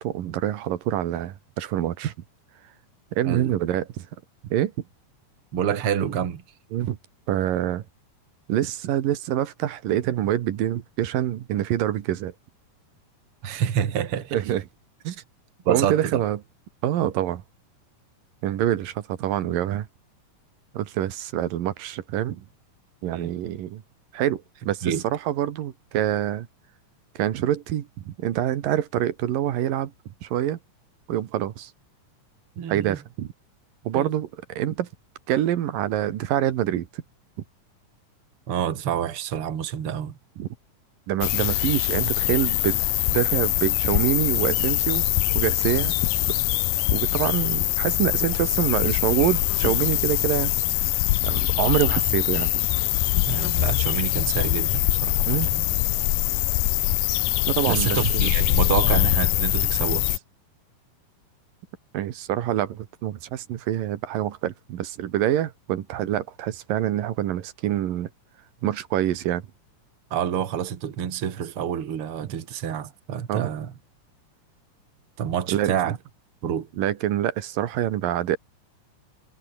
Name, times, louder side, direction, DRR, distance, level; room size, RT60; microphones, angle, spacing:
voice 1, 0.0-2.1 3.1-4.1 4.4-4.7 6.7-7.0 7.3-7.8 8.5-12.3 14.3-14.6 15.0-15.2 15.7-16.4 16.8-17.4 18.4-19.9 20.7-22.4 23.0-23.8 24.1-26.5 27.2-29.9 30.2-30.6 31.1-31.7 32.7-33.3 33.8-34.9 35.3-37.0 40.4-40.5 41.1-42.8 43.1-45.1 45.3-45.9 46.9-50.5 51.2-52.6 55.3-55.5 57.5-58.0 61.9-68.1 68.6-69.4 73.3-73.5 75.5-75.7 76.8-78.4, right 12 dB, 90° right, 3.2 m, -26 dB
voice 2, 5.5-6.4 13.4-14.4 15.6-16.2 23.0-23.3 24.8-25.0 32.6-33.0 33.9-34.1 38.5-40.1 53.2-55.7 57.7-60.2 70.1-73.7 75.2-76.0 76.4-76.7, right 9 dB, 45° right, 2.6 m, -28 dB
sound 1, 41.2-60.2, left 18 dB, 85° left, 2.4 m, -23 dB
omnidirectional pair, 3.8 m